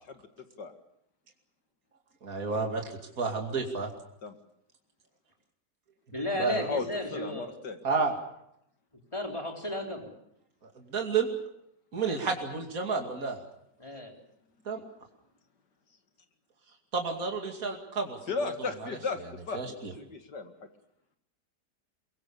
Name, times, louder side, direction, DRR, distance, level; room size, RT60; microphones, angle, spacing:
voice 1, 2.2-3.9 6.4-6.7 7.8-8.1 10.8-11.3 11.9-13.4 14.6-14.8 16.9-18.7 19.5-19.9, right 4 dB, 55° right, 2 dB, 3.0 m, -31 dB
voice 2, 6.1-7.5 9.1-10.1 12.2-12.3 13.8-14.1, left 1 dB, 15° left, 1 dB, 4.1 m, -34 dB
voice 3, 7.1-8.1 14.8-14.9 18.3-19.2 19.5-20.5, left 4 dB, 75° left, 6 dB, 2.6 m, -35 dB
23.0 x 23.0 x 7.0 m, 0.77 s
omnidirectional pair, 1.8 m